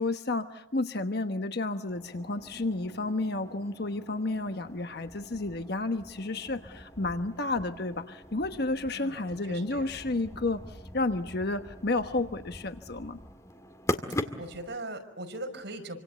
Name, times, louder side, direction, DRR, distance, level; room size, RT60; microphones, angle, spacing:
voice 1, 0.0-13.2, left 2 dB, 55° left, 8 dB, 1.2 m, -31 dB
sound 1, 1.9-14.7, left 1 dB, 15° left, 2.0 m, -41 dB
voice 2, 9.5-9.8 14.4-16.0, right 2 dB, 60° right, 5 dB, 5.5 m, -39 dB
27.5 x 25.5 x 8.1 m, 0.79 s
head